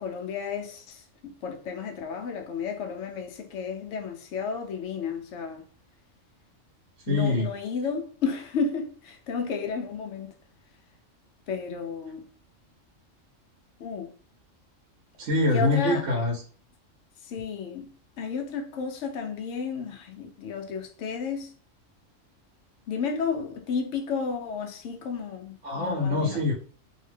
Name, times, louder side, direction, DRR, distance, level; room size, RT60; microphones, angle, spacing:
voice 1, 0.0-5.6 7.1-10.3 11.5-12.3 13.8-14.1 15.5-16.1 17.3-17.9 18.2-21.5 22.9-26.4, left 5 dB, 70° left, 0.9 m, -32 dB
voice 2, 7.1-7.5 15.2-16.4 25.6-26.5, left 2 dB, 75° right, 1.0 m, -24 dB
2.7 x 2.1 x 3.2 m
omnidirectional pair, 1.3 m